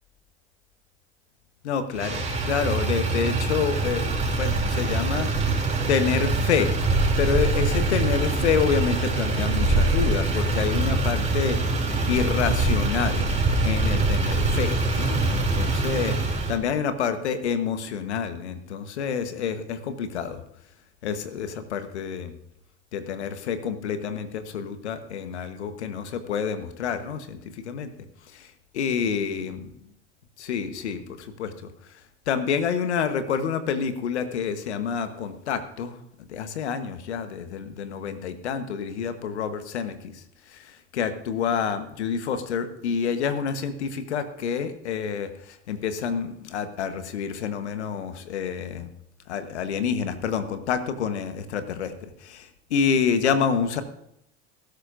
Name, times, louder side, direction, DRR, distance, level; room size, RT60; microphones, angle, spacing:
voice 1, 1.6-5.3 5.9-6.7 7.2-11.6 12.1-13.4 13.6-20.4 21.0-22.4 22.9-27.9 28.3-29.6 30.4-48.9 49.3-53.8, left 7 dB, 80° left, 10 dB, 1.2 m, -28 dB
Motor vehicle (road), 1.9-16.6, right 2 dB, 20° right, 2.9 m, -24 dB
19.0 x 11.5 x 2.6 m, 0.77 s
hypercardioid pair, 75°, 33 cm